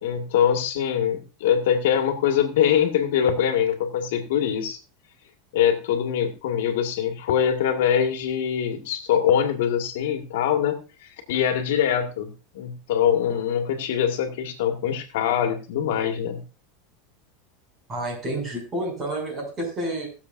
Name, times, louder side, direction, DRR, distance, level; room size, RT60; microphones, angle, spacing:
voice 1, 0.0-4.8 5.5-16.4, left 9 dB, 75° left, 5 dB, 1.8 m, -23 dB
voice 2, 17.9-20.1, right 1 dB, 20° right, -1 dB, 6.6 m, -29 dB
21.0 x 7.2 x 2.6 m, 0.33 s
supercardioid pair, 155°, 0 cm